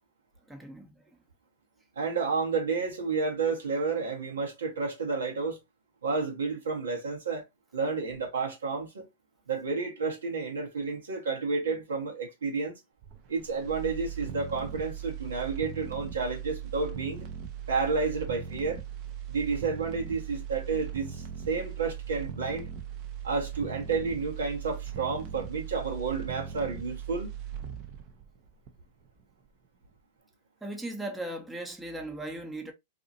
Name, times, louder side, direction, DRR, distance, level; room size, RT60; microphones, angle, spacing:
voice 1, 0.5-1.2 30.6-32.7, right 1 dB, 10° right, 0.7 m, -38 dB
voice 2, 2.0-5.6 6.0-7.4 7.7-9.1 9.5-12.7 13.3-17.3 17.7-18.8 19.3-22.7 23.2-27.3, right 4 dB, 80° right, 1.1 m, -31 dB
sound 1, 13.0-29.1 29.5-29.6, right 9 dB, 45° right, 0.6 m, -39 dB
2.7 x 2.4 x 2.7 m
hypercardioid pair, 105°, 0 cm